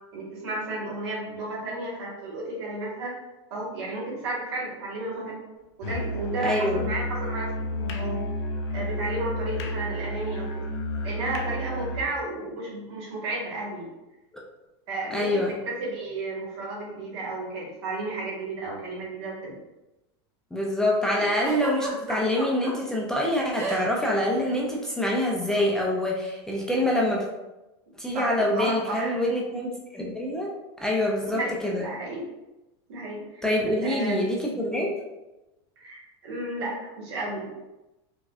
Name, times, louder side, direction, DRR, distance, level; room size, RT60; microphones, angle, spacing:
voice 1, 0.1-3.2 3.5-5.4 5.8-8.2 8.7-10.5 11.0-13.9 14.9-19.5 21.2-21.3 28.1-29.1 31.2-32.2 32.9-33.4 33.8-34.2 35.8-37.5, right 2 dB, 80° right, -4 dB, 1.5 m, -33 dB
Musical instrument, 5.8-12.1, equal, 80° left, 0.5 m, -31 dB
voice 2, 6.4-6.9 15.1-15.5 20.5-27.3 28.0-30.5 30.8-31.9 33.4-35.0, left 1 dB, 5° left, -3 dB, 0.3 m, -26 dB
Giggle, 21.4-22.7 23.6-24.1 24.3-24.6 25.5-25.7, right 3 dB, 20° right, 0.8 m, -33 dB
4.7 x 2.2 x 2.4 m, 1.0 s
supercardioid pair, 155°, 14 cm